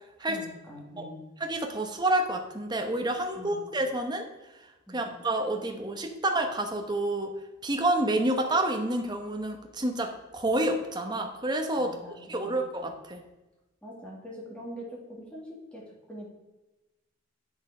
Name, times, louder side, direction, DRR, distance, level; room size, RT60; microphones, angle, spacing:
voice 1, 0.3-1.2 3.4-3.6 4.9-5.1 11.8-12.6 13.8-16.3, equal, 5° left, -4 dB, 2.1 m, -43 dB
voice 2, 1.4-4.3 4.9-7.3 7.6-11.9 12.3-13.2, right 1 dB, 20° right, 4 dB, 1.0 m, -29 dB
8.0 x 6.4 x 5.0 m, 1.0 s
head